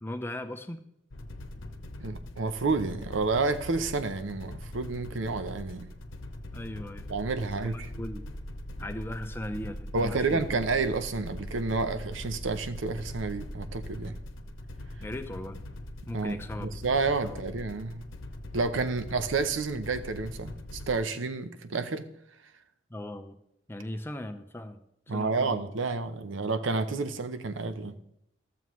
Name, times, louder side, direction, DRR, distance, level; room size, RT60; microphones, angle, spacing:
voice 1, 0.0-0.8 6.5-7.1 7.6-8.3 8.8-10.6 15.0-15.6 16.1-16.7 17.2-17.4 22.9-23.4 23.7-25.6, left 1 dB, 10° left, 8 dB, 0.5 m, -38 dB
sound 1, 1.1-21.0, left 1 dB, 85° left, 0.9 m, -42 dB
voice 2, 2.0-5.9 7.1-7.7 9.9-14.1 16.1-18.0 18.5-22.1 25.1-28.0, right 3 dB, 80° right, 10 dB, 0.7 m, -30 dB
14.5 x 7.1 x 3.1 m, 0.78 s
head